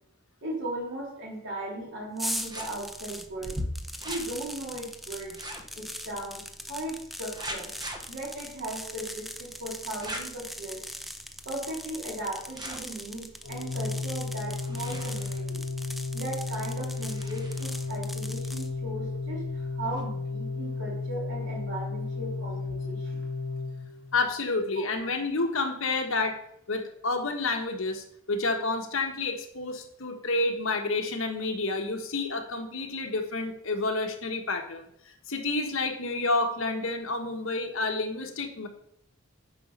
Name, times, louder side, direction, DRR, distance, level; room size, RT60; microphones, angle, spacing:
voice 1, 0.4-3.6 4.0-5.5 5.8-6.4 6.7-7.7 8.1-10.8 11.5-15.6 16.1-23.2 24.8-24.9, right 1 dB, 60° right, -2 dB, 3.5 m, -37 dB
sound 1, 2.2-18.7, equal, ahead, 0.5 m, -41 dB
sound 2, 2.3-20.0, equal, 20° right, 1.1 m, -44 dB
Organ, 13.4-24.3, left 3 dB, 85° left, 0.8 m, -34 dB
voice 2, 24.1-26.4 26.7-34.8 35.3-38.7, left 3 dB, 70° left, 4 dB, 1.4 m, -29 dB
9.7 x 5.1 x 5.6 m, 0.71 s
head